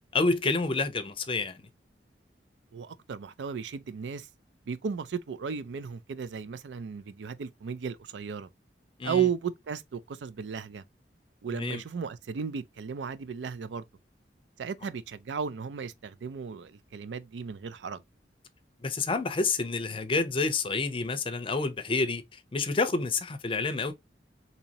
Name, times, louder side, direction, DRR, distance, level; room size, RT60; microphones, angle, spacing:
voice 1, 0.1-1.6 9.0-9.2 11.5-11.8 18.8-22.2 22.5-23.9, left 3 dB, 30° left, 0.5 m, -28 dB
voice 2, 2.7-4.3 4.7-8.5 9.0-10.8 11.4-13.8 14.6-18.0, right 7 dB, 85° right, 0.4 m, -34 dB
4.0 x 2.8 x 2.8 m
head